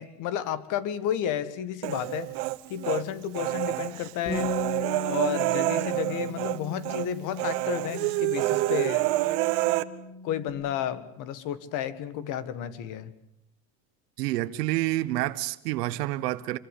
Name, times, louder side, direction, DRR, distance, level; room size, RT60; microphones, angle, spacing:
voice 1, 0.0-2.3 2.7-4.5 5.1-9.0 10.2-13.1, left 10 dB, 40° left, 1.9 m, -32 dB
Human voice, 1.8-3.0 3.3-6.6 6.8-7.1 7.4-9.8, right 19 dB, 50° right, 1.4 m, -27 dB
Bass guitar, 4.3-10.5, left 2 dB, 65° left, 7.5 m, -38 dB
voice 2, 14.2-16.6, right 17 dB, 75° right, 1.3 m, -28 dB
27.0 x 22.5 x 8.5 m
supercardioid pair, 160°, 48 cm